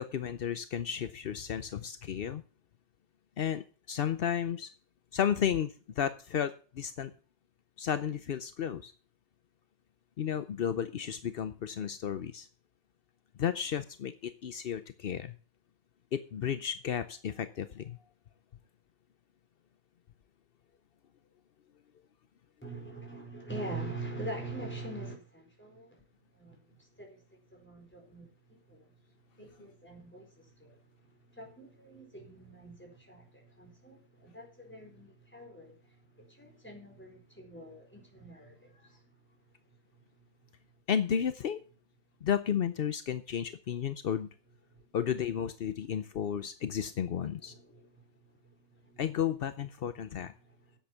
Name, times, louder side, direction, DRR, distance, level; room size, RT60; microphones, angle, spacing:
voice 1, 0.0-2.4 3.4-4.7 5.1-7.1 7.8-8.9 10.2-12.5 13.4-15.3 16.1-18.0 40.9-41.6 42.2-44.3 44.9-47.5 49.0-50.3, left 8 dB, 60° left, 0.6 m, -33 dB
voice 2, 22.6-26.0 26.3-26.6 27.0-27.2 27.5-28.9 29.4-30.8 31.3-35.8 36.2-39.0 44.7-44.8 47.5-47.9 48.4-48.6 48.8-49.0, right 2 dB, 5° left, 4.5 m, -44 dB
10.5 x 8.0 x 7.0 m
omnidirectional pair, 1.7 m